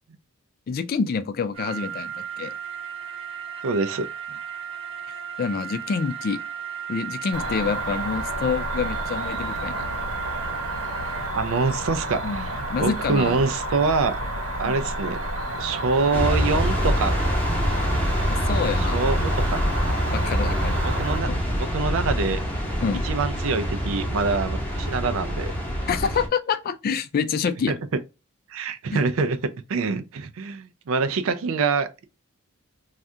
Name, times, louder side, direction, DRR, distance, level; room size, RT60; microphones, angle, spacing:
voice 1, 0.7-2.5 5.4-6.4 6.9-9.9 12.2-13.4 14.6-14.8 18.3-19.0 20.1-20.8 21.2-21.4 22.8-23.1 25.9-27.8 28.9-29.0, left 5 dB, 45° left, 0.3 m, -27 dB
sound 1, 1.5-11.3, right 8 dB, 25° right, 0.7 m, -35 dB
voice 2, 3.6-4.1 11.3-14.2 14.6-15.2 15.6-17.2 18.9-19.6 20.8-22.4 23.0-25.5 27.7-27.8 28.5-32.1, right 4 dB, 65° right, 0.4 m, -25 dB
Cricket, 7.3-21.2, right 1 dB, 85° right, 1.1 m, -31 dB
sound 2, 16.1-26.3, equal, 5° left, 0.9 m, -25 dB
2.7 x 2.4 x 3.2 m
head